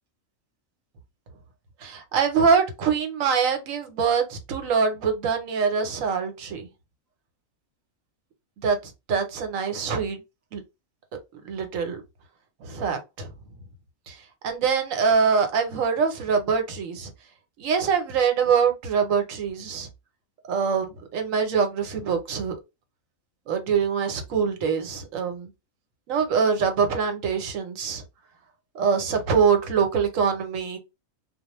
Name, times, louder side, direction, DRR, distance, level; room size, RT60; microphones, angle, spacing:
voice 1, 1.8-6.7 8.6-8.8 9.1-10.2 10.5-10.6 11.3-12.0 12.6-13.3 14.1-17.1 17.6-19.9 20.5-22.6 23.5-25.5 26.1-28.0 28.7-30.8, right 6 dB, 75° right, 1.1 m, -24 dB
2.3 x 2.1 x 2.9 m
omnidirectional pair, 1.4 m